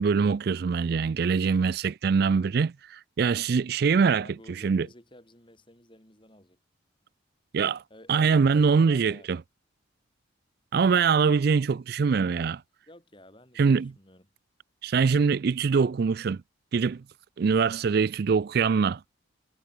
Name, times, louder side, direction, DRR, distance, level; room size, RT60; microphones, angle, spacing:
voice 1, 0.0-4.9 7.5-7.8 8.1-9.4 10.7-12.6 13.6-13.9 14.8-16.4 16.7-17.0 17.4-19.0, right 5 dB, 50° right, 0.4 m, -23 dB
voice 2, 3.9-6.6 7.9-9.3 12.9-14.3, left 1 dB, 25° left, 5.7 m, -51 dB
head